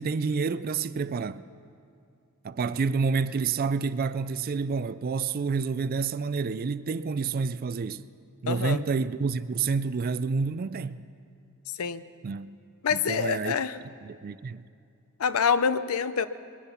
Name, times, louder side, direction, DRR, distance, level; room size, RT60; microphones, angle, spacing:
voice 1, 0.0-1.4 2.4-8.0 8.4-11.0 12.2-12.6 12.9-13.5 13.8-14.6, right 5 dB, 45° right, 0.4 m, -29 dB
voice 2, 8.5-8.8 11.8-12.0 12.8-13.8 15.2-16.3, left 6 dB, 90° left, 0.6 m, -26 dB
21.0 x 10.5 x 5.7 m
head